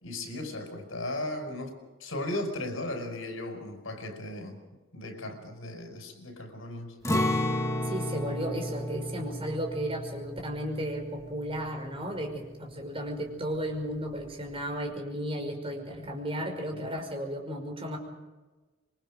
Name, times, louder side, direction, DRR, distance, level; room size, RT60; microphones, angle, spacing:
voice 1, 0.0-4.6 4.9-6.9 16.7-16.9, left 1 dB, 80° left, 6 dB, 5.7 m, -36 dB
Acoustic guitar, 7.0-12.9 13.3-13.4 13.9-14.4, left 1 dB, 15° left, 2.8 m, -33 dB
voice 2, 7.8-18.0, equal, 30° right, 3 dB, 5.5 m, -34 dB
27.0 x 23.5 x 5.2 m, 1.2 s
head